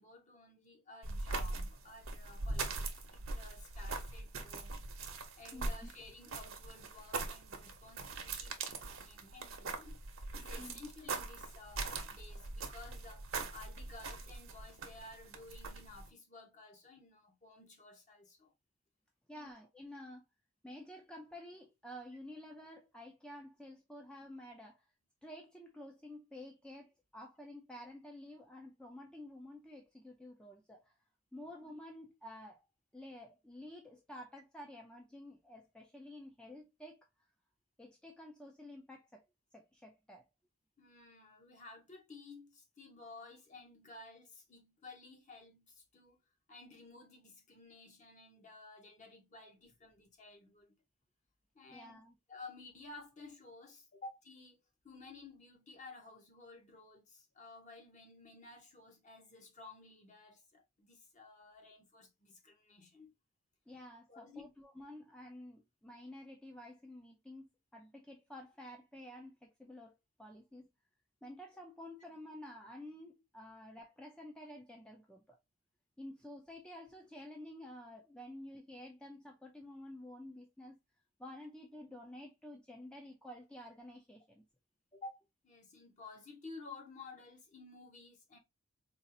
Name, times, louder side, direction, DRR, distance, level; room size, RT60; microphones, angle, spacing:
voice 1, 0.0-4.8 5.4-10.0 10.4-18.5 19.3-19.5 31.3-31.5 40.8-46.2 46.5-50.7 51.5-52.0 52.3-63.1 64.1-64.5 84.9-85.2 85.4-88.4, left 3 dB, 35° left, 0.9 m, -54 dB
sound 1, 1.0-16.1, right 3 dB, 65° right, 0.8 m, -42 dB
voice 2, 5.5-5.9 10.6-10.8 19.3-20.2 20.6-24.9 25.2-31.0 31.3-32.7 32.9-37.1 37.8-39.2 39.5-40.2 51.7-52.1 63.7-70.7 71.2-75.4 76.0-80.8 81.2-84.4, left 1 dB, 5° left, 0.4 m, -51 dB
4.1 x 2.4 x 2.6 m
head